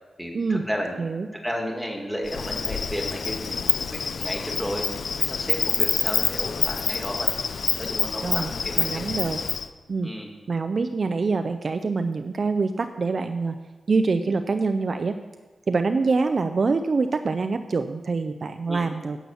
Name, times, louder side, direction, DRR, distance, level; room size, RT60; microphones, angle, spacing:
voice 1, 0.2-1.0 1.3-7.3 7.8-9.0 10.0-10.3 18.7-18.9, equal, ahead, 0 dB, 1.8 m, -33 dB
Insect, 2.3-9.7, left 5 dB, 60° left, 0.5 m, -27 dB
voice 2, 8.2-9.4 9.9-10.1 10.5-13.5 13.9-15.2 15.7-19.2, right 4 dB, 40° right, 8 dB, 0.4 m, -25 dB
10.0 x 7.0 x 7.0 m, 1.3 s
wide cardioid pair, 170°, 0 cm